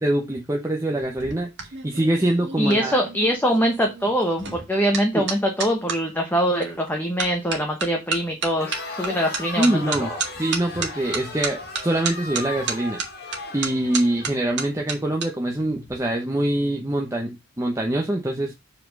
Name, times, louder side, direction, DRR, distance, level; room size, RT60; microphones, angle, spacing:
voice 1, 0.0-1.5 1.8-3.0 5.1-5.3 9.6-10.1 10.4-13.0 13.5-18.5, right 1 dB, 15° right, 1 dB, 0.9 m, -24 dB
sound 1, 1.0-6.0 6.6-6.9 7.2-15.3 15.6-15.9, right 5 dB, 55° right, 1.9 m, -31 dB
voice 2, 2.6-10.2, equal, 10° left, 2 dB, 1.1 m, -23 dB
Crowd, 8.5-14.7, left 3 dB, 45° left, 2.0 m, -37 dB
7.5 x 4.4 x 5.3 m, 0.23 s
head